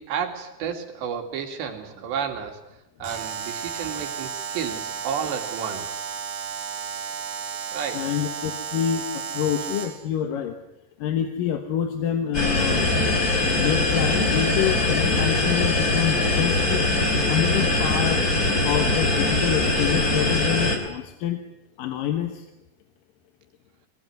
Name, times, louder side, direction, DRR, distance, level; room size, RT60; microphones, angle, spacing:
voice 1, 0.0-2.6 3.0-6.1 7.7-8.1, right 7 dB, 85° right, 4 dB, 4.6 m, -31 dB
Alarm, 3.0-10.1, right 7 dB, 60° right, 3.2 m, -33 dB
voice 2, 7.9-10.6 11.0-12.9 13.6-16.9 17.3-18.2 18.6-21.4 21.8-22.5, left 9 dB, 65° left, 6 dB, 2.6 m, -27 dB
sound 1, 12.3-20.8, left 2 dB, 25° left, 3.2 m, -22 dB
22.0 x 20.5 x 9.5 m, 0.87 s
omnidirectional pair, 4.9 m